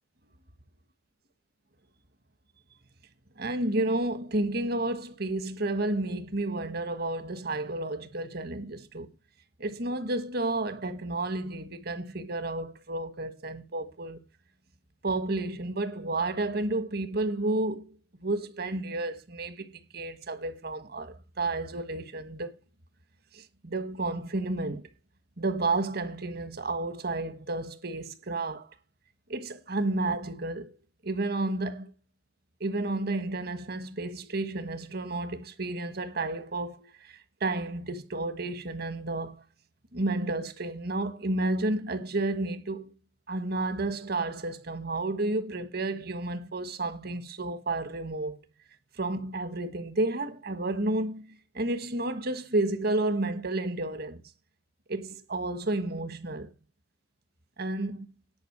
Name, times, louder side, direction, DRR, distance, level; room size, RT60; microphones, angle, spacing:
voice 1, 3.4-9.1 9.6-14.2 15.0-18.0 18.2-22.5 23.3-24.9 25.4-28.7 29.3-30.8 31.0-31.9 32.6-39.4 39.9-42.9 43.3-48.4 49.0-54.2 54.9-56.5 57.6-58.1, right 2 dB, 55° right, 1.4 m, -31 dB
10.5 x 5.3 x 7.9 m
head